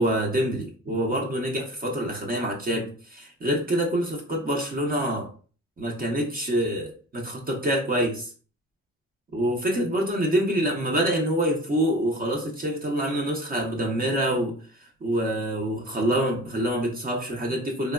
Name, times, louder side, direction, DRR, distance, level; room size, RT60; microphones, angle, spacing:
voice 1, 0.0-5.3 5.8-8.3 9.3-14.5 15.0-17.9, right 1 dB, 30° right, 0 dB, 0.7 m, -26 dB
3.3 x 2.1 x 2.3 m, 0.39 s
cardioid pair, 90°, 30 cm